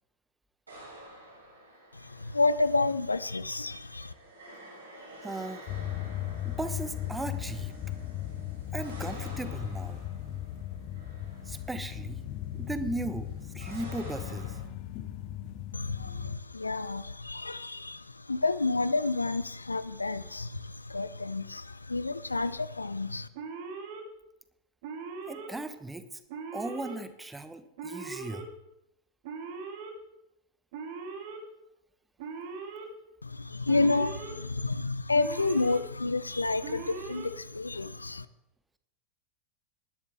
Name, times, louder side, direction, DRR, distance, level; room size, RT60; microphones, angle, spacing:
sound 1, 0.7-14.6, right 1 dB, 80° right, 6.8 m, -51 dB
voice 1, 1.9-4.1 15.7-23.3 33.2-38.3, left 3 dB, 80° left, 16 dB, 0.5 m, -30 dB
voice 2, 5.2-5.6 6.4-7.7 8.7-10.0 11.5-12.2 12.5-14.6 25.3-26.0 26.5-28.5, right 2 dB, 10° right, 11 dB, 1.1 m, -37 dB
sound 2, 5.7-16.4, left 12 dB, 45° left, 1.1 m, -37 dB
Alarm, 23.4-24.0 24.8-25.5 26.3-27.0 27.8-28.4 29.2-29.9 30.7-31.4 32.2-32.9 33.7-34.3 35.1-35.8 36.6-37.3, right 5 dB, 50° right, 2.3 m, -40 dB
19.5 x 12.0 x 3.5 m, 0.82 s
figure-of-eight pair, 90°, 0 cm